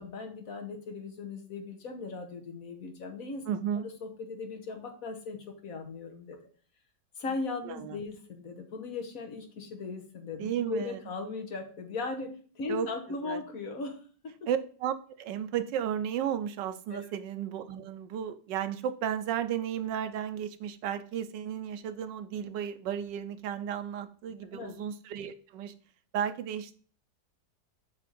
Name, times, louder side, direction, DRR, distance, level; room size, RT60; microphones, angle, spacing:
voice 1, 0.0-3.5 3.8-6.4 7.2-14.0 16.9-17.0 24.5-24.7, left 4 dB, 55° left, 5 dB, 1.5 m, -38 dB
voice 2, 3.5-3.8 7.7-8.0 10.4-11.0 12.7-12.9 13.2-13.4 14.5-25.7 26.1-26.7, right 9 dB, 90° right, 11 dB, 1.4 m, -34 dB
7.3 x 3.5 x 5.9 m, 0.42 s
omnidirectional pair, 1.9 m